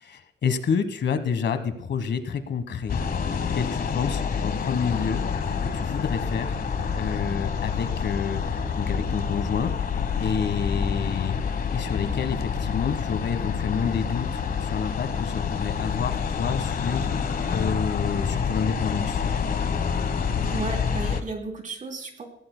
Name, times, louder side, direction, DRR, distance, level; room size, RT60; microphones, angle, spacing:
voice 1, 0.0-3.0 3.5-5.2 5.7-6.6 6.9-8.4 8.8-9.7 10.2-11.3 11.7-17.1 17.5-19.2, left 6 dB, 70° left, 10 dB, 1.3 m, -28 dB
sound 1, 2.9-21.2, left 6 dB, 50° left, 1.1 m, -27 dB
voice 2, 20.5-22.2, right 3 dB, 45° right, 4 dB, 3.0 m, -34 dB
20.0 x 16.5 x 2.2 m, 0.71 s
wide cardioid pair, 160°, 19 cm